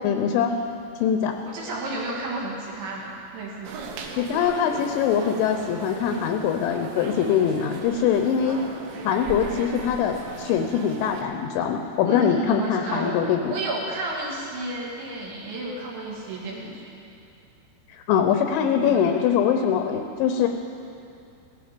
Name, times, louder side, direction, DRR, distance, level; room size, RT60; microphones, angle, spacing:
voice 1, 0.0-0.5 1.0-1.3 4.2-8.6 9.0-13.6 18.1-20.5, left 8 dB, 80° left, 5 dB, 2.9 m, -23 dB
voice 2, 1.4-3.8 8.4-8.7 12.1-13.2 13.5-16.9 18.5-19.1, right 2 dB, 65° right, -4 dB, 4.6 m, -32 dB
sound 1, 3.6-11.2, right 5 dB, 80° right, 3.6 m, -38 dB
17.5 x 14.5 x 5.2 m, 2.6 s
omnidirectional pair, 5.8 m